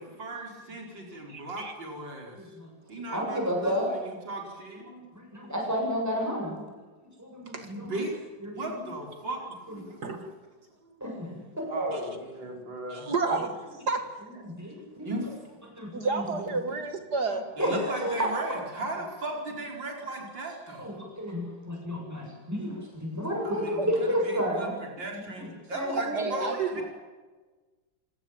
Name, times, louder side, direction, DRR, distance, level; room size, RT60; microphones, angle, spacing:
voice 1, 0.0-2.6 2.9-4.8 7.8-8.1 8.5-9.4 9.7-9.8 11.7-13.1 15.0-15.6 17.6-21.0 23.4-24.7 25.0-26.8, right 2 dB, 85° right, 1 dB, 5.5 m, -36 dB
voice 2, 1.3-1.7 7.5-7.7 10.0-10.2 11.9-12.0 12.9-13.5 13.9-14.4 15.9-17.4 23.8-23.9 26.0-26.8, right 4 dB, 60° right, 7 dB, 2.5 m, -30 dB
voice 3, 2.4-2.7 3.1-3.9 4.8-6.7 7.2-7.9 8.4-8.8 9.7-9.8 11.0-12.1 14.4-15.1 15.7-16.2 17.6-18.3 20.8-24.7 25.4-26.1, equal, 10° right, -1 dB, 7.7 m, -31 dB
27.5 x 18.5 x 8.9 m, 1.3 s
omnidirectional pair, 2.0 m